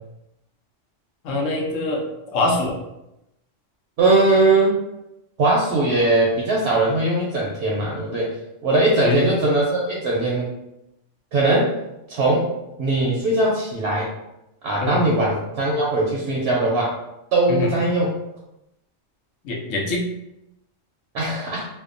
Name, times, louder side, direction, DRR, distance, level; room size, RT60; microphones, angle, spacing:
voice 1, 1.2-2.0 2.3-2.8 9.0-9.3 14.8-15.0 17.5-17.7 19.4-20.0, left 2 dB, 90° left, -1 dB, 1.0 m, -23 dB
voice 2, 4.0-4.7 5.4-8.3 8.6-10.5 11.3-11.7 12.1-12.5 12.8-14.1 14.6-17.0 17.3-18.2 21.1-21.7, right 2 dB, 65° right, -3 dB, 0.8 m, -20 dB
2.7 x 2.1 x 2.5 m, 0.88 s
omnidirectional pair, 1.3 m